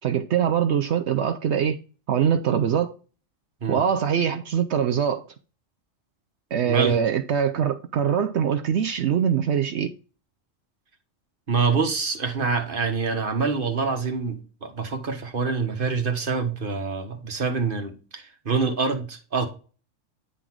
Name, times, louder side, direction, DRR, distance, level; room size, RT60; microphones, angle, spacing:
voice 1, 0.0-1.8 2.1-3.0 3.7-5.2 6.5-9.9, right 8 dB, 65° right, 0.9 m, -23 dB
voice 2, 6.6-7.0 11.5-19.5, right 4 dB, 45° right, 1.5 m, -26 dB
9.6 x 3.9 x 4.6 m
omnidirectional pair, 1.3 m